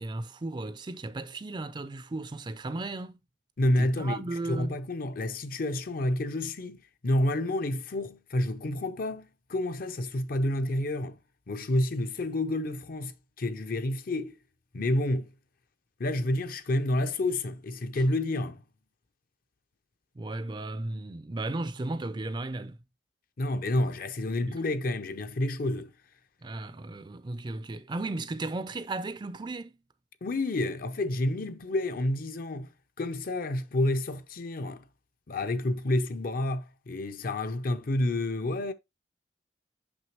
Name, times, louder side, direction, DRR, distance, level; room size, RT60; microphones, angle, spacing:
voice 1, 0.0-3.2 3.8-4.8 17.9-18.0 20.1-22.8 24.4-24.6 26.4-29.7, right 2 dB, 25° right, 0.4 m, -35 dB
voice 2, 3.6-11.2 11.5-14.4 14.7-15.3 16.0-18.6 23.4-25.9 30.2-32.7 33.0-34.8 35.3-38.7, left 1 dB, 50° left, 0.6 m, -29 dB
6.1 x 5.7 x 2.9 m
head